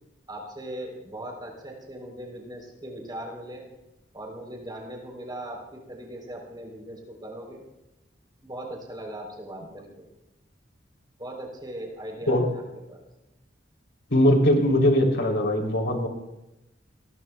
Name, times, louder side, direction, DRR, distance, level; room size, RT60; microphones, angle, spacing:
voice 1, 0.3-3.6 4.1-7.6 8.4-10.1 11.2-12.6 12.9-13.0, right 1 dB, 25° right, 0 dB, 3.8 m, -39 dB
voice 2, 14.1-16.1, left 1 dB, 85° left, 0 dB, 3.5 m, -21 dB
29.5 x 21.0 x 2.3 m, 0.97 s
head